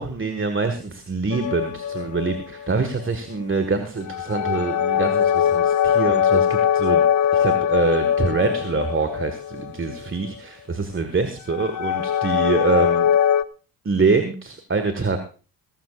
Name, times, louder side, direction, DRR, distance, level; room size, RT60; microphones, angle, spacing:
voice 1, 0.0-7.0 7.3-13.1 13.9-15.2, right 4 dB, 25° right, 8 dB, 1.7 m, -25 dB
sound 1, 1.3-3.0 4.0-10.1 11.5-13.4, left 9 dB, 35° left, 0.8 m, -21 dB
21.5 x 12.5 x 2.5 m, 0.37 s
hypercardioid pair, 50°, 50 cm